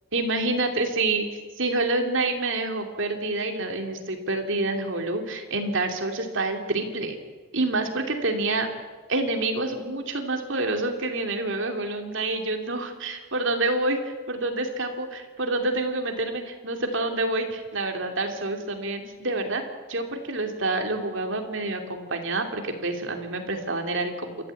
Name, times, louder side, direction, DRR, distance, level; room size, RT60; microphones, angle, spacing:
voice 1, 0.1-1.3 1.6-7.2 7.5-8.7 9.1-19.6 19.9-24.5, right 2 dB, 60° right, 4 dB, 2.9 m, -27 dB
28.5 x 14.0 x 8.5 m, 1.4 s
head